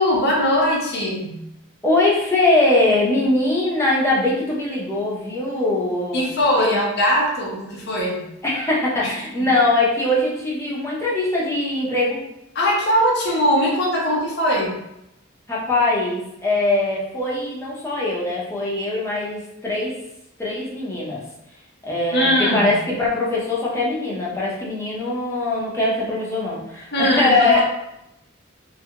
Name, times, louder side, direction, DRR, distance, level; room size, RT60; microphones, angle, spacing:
voice 1, 0.0-1.4 6.1-8.2 9.0-9.1 9.4-9.5 12.5-14.8 22.1-22.7 26.9-27.6, equal, 50° left, -3 dB, 0.8 m, -20 dB
voice 2, 1.8-6.3 6.6-6.8 8.4-12.2 15.5-19.9 20.4-21.2 21.8-27.6, left 2 dB, 15° left, -6 dB, 0.7 m, -21 dB
2.6 x 2.4 x 2.9 m, 0.85 s
head